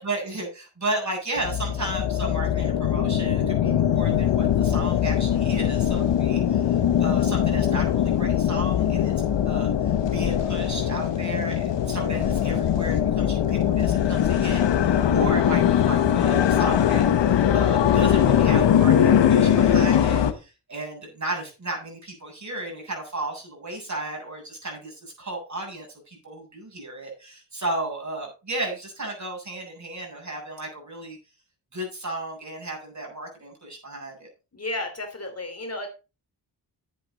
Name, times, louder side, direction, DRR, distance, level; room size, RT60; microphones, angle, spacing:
voice 1, 0.0-9.1 9.4-31.2 31.7-34.3, right 2 dB, 40° right, 0 dB, 7.6 m, -34 dB
sound 1, 1.4-20.3, left 9 dB, 85° left, 1.1 m, -21 dB
voice 2, 34.5-35.9, left 2 dB, 35° left, 5 dB, 3.0 m, -32 dB
11.0 x 8.5 x 4.1 m, 0.30 s
cardioid pair, 50°, 43 cm